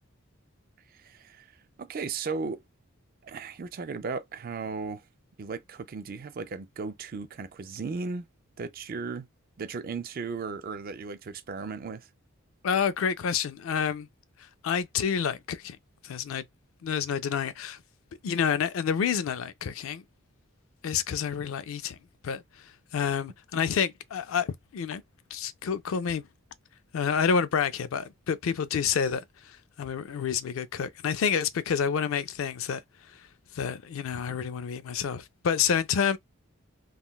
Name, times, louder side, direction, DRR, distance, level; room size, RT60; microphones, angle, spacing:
voice 1, 0.9-1.5 1.8-2.6 3.2-5.0 5.4-8.3 8.6-9.3 9.6-12.1, right 4 dB, 45° right, 0.4 m, -36 dB
voice 2, 12.6-14.1 14.6-15.8 16.0-16.4 16.8-17.8 18.2-20.0 20.8-22.0 22.2-25.0 25.3-26.2 26.9-32.8 33.1-33.2 33.5-36.2, left 7 dB, 70° left, 0.4 m, -29 dB
3.6 x 2.3 x 2.2 m
head